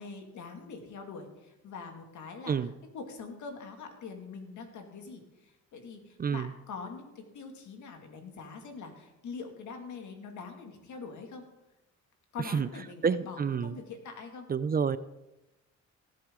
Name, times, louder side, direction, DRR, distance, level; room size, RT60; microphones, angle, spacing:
voice 1, 0.0-11.4 12.3-14.5, left 4 dB, 70° left, 4 dB, 2.3 m, -44 dB
voice 2, 13.0-13.8 14.5-15.0, right 6 dB, 30° right, 15 dB, 0.5 m, -28 dB
18.0 x 7.8 x 3.7 m, 0.96 s
cardioid pair, 90°, 30 cm